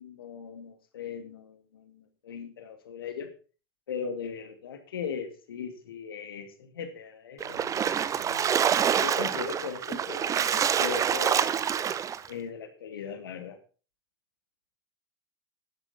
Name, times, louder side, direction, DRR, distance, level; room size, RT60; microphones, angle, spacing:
voice 1, 0.0-3.3 3.9-8.6 9.0-11.4 12.3-13.6, left 6 dB, 70° left, 7 dB, 2.4 m, -39 dB
Splash splatter, 7.4-12.3, right 8 dB, 25° right, 0.8 m, -26 dB
14.5 x 10.0 x 4.4 m, 0.37 s
figure-of-eight pair, 80°, 13 cm